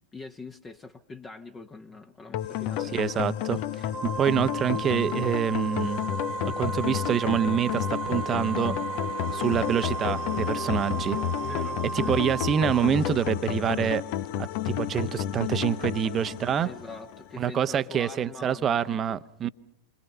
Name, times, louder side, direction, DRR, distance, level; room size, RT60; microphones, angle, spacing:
voice 1, 0.1-2.9 11.4-12.2 16.6-18.8 19.1-19.2, left 3 dB, 20° left, 1.3 m, -43 dB
sound 1, 2.3-17.4, left 11 dB, 45° left, 0.9 m, -31 dB
voice 2, 2.9-3.6 4.0-6.0 6.6-8.8 9.3-11.2 11.9-14.0 14.4-16.7 17.4-19.5, right 8 dB, 25° right, 1.0 m, -26 dB
Wind instrument woodwind instrument, 3.9-12.9, right 4 dB, 10° right, 1.7 m, -35 dB
sound 2, 5.9-12.8, right 11 dB, 60° right, 1.0 m, -46 dB
29.0 x 24.5 x 5.6 m
figure-of-eight pair, 90°, 0 cm